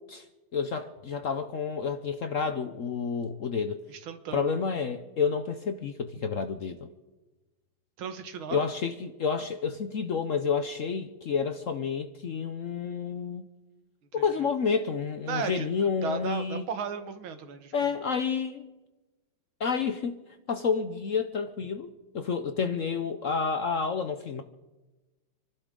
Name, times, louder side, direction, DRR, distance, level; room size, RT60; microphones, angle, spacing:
voice 1, 0.5-3.8 4.3-6.8 8.5-13.5 14.1-16.7 17.7-18.7 19.6-20.2 20.5-24.4, left 5 dB, 65° left, 8 dB, 0.8 m, -29 dB
voice 2, 3.9-4.6 8.0-8.7 15.3-17.7, right 5 dB, 85° right, 9 dB, 2.0 m, -35 dB
28.5 x 12.0 x 3.8 m, 1.1 s
omnidirectional pair, 2.2 m